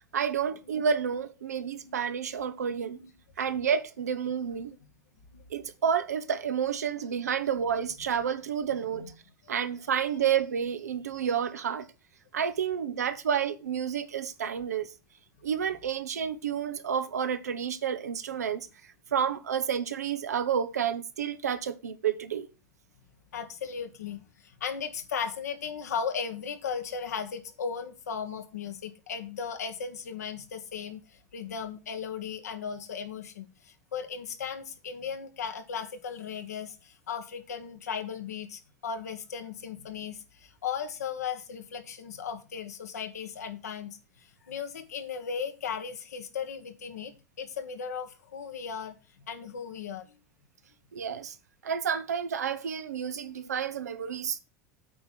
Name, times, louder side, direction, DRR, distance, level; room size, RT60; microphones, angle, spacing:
voice 1, 0.1-3.0 3.4-4.8 5.5-9.1 9.5-11.9 12.3-14.9 15.4-18.7 19.1-22.5 50.9-51.4 51.6-54.4, right 7 dB, 90° right, 0.9 m, -30 dB
voice 2, 5.3-5.7 8.9-9.0 23.3-43.9 44.2-50.2, left 6 dB, 85° left, 1.5 m, -37 dB
8.5 x 4.6 x 7.4 m
hypercardioid pair, 85°, 8 cm